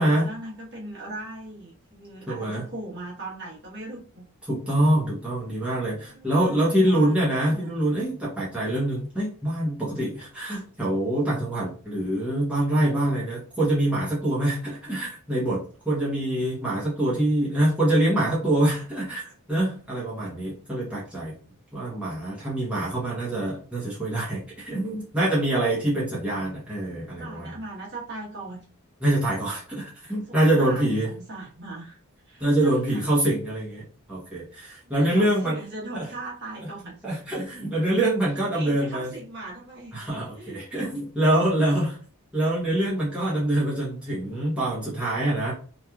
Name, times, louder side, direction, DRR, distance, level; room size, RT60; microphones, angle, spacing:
voice 1, 0.0-4.3 6.0-7.1 7.5-7.7 13.1-13.3 27.2-28.6 30.0-32.0 32.3-33.1 34.5-37.0 38.5-40.0 40.3-41.0, right 2 dB, 50° right, -4 dB, 1.2 m, -39 dB
voice 2, 2.3-2.6 4.4-21.3 21.7-27.5 29.0-31.1 32.4-33.8 34.1-35.6 35.9-36.1 36.6-36.7 37.0-39.1 39.9-42.0 42.3-45.5, right 1 dB, 5° right, -8 dB, 0.8 m, -25 dB
2.9 x 2.5 x 2.3 m, 0.39 s
head